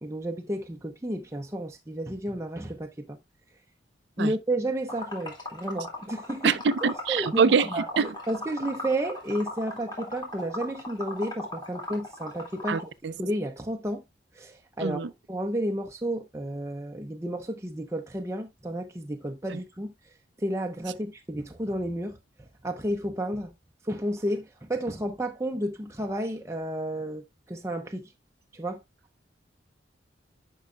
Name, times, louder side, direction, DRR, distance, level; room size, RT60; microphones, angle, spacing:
voice 1, 0.0-3.2 4.2-6.6 7.1-12.9 13.2-14.0 14.3-15.0 15.3-19.9 20.4-23.5 23.8-28.1 28.5-28.8, right 1 dB, 15° right, 0.7 m, -32 dB
Liquid, 4.9-12.9, left 1 dB, 20° left, 2.5 m, -37 dB
voice 2, 6.4-7.7 8.0-8.1 12.7-13.1 14.8-15.1 19.5-19.6, right 5 dB, 65° right, 0.5 m, -24 dB
10.0 x 5.5 x 2.2 m
head